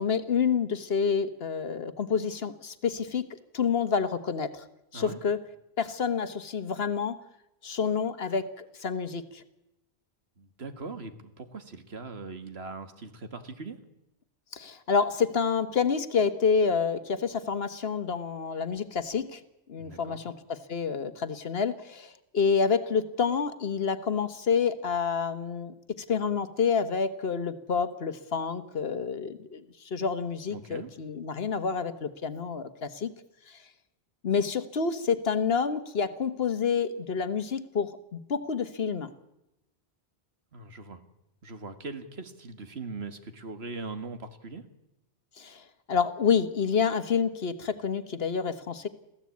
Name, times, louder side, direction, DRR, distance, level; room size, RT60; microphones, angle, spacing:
voice 1, 0.0-3.3 3.5-4.6 4.9-5.4 5.8-7.2 7.6-9.4 14.5-19.4 19.7-20.2 20.7-25.7 26.1-29.6 29.9-33.1 34.2-39.1 45.4-48.9, left 6 dB, 65° left, 11 dB, 1.4 m, -28 dB
voice 2, 10.4-13.8 19.8-20.2 30.5-30.9 40.5-41.0 41.4-44.7, right 3 dB, 70° right, 9 dB, 2.0 m, -40 dB
23.0 x 15.5 x 8.4 m, 0.89 s
omnidirectional pair, 1.1 m